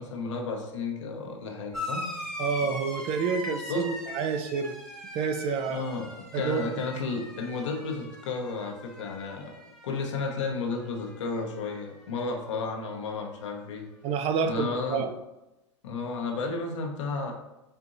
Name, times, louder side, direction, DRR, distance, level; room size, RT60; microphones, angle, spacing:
voice 1, 0.0-2.1 3.7-3.9 5.7-9.5 9.8-13.9 14.5-15.1 15.8-17.3, left 4 dB, 75° left, 1 dB, 0.9 m, -33 dB
sound 1, 1.7-10.8 11.0-11.8 12.9-13.0, left 1 dB, ahead, 0.9 m, -40 dB
voice 2, 2.4-4.8 5.1-5.8 6.3-6.6 14.0-15.2, right 6 dB, 40° right, 8 dB, 0.5 m, -28 dB
4.4 x 3.5 x 2.6 m, 0.96 s
hypercardioid pair, 105°, 16 cm